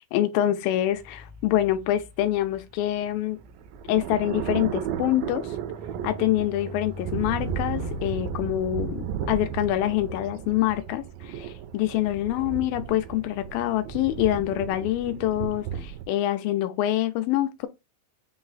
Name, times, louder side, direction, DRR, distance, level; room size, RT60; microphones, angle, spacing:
voice 1, 0.0-3.4 3.9-5.6 6.0-17.7, left 13 dB, 85° left, 2.1 m, -26 dB
sound 1, 0.9-12.5 13.2-13.5, left 1 dB, 50° left, 0.4 m, -44 dB
sound 2, 3.0-16.1, right 8 dB, 80° right, 2.1 m, -34 dB
6.0 x 2.0 x 3.9 m
omnidirectional pair, 4.5 m